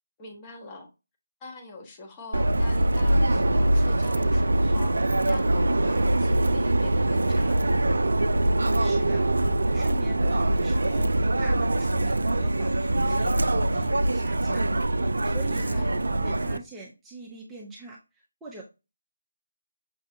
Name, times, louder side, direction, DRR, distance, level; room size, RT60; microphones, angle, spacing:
voice 1, 0.2-0.9 1.4-7.8 15.6-16.0, left 2 dB, 20° left, 0 dB, 1.0 m, -43 dB
Subway metro underground, 2.3-16.6, right 1 dB, 70° right, 0.4 m, -23 dB
voice 2, 8.8-9.3 9.7-11.1 11.4-14.7 14.9-18.6, right 3 dB, 5° right, -4 dB, 0.6 m, -43 dB
6.1 x 2.3 x 2.6 m, 0.27 s
figure-of-eight pair, 155°, 0 cm